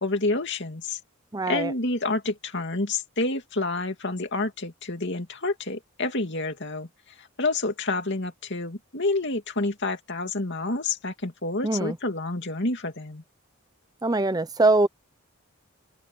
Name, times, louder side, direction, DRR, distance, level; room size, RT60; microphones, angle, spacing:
voice 1, 0.0-1.0 1.5-6.9 7.2-13.2, left 2 dB, 55° left, 2.7 m, -28 dB
voice 2, 1.3-1.7 11.6-12.0 14.0-14.9, right 2 dB, 15° right, 0.7 m, -22 dB
open air
head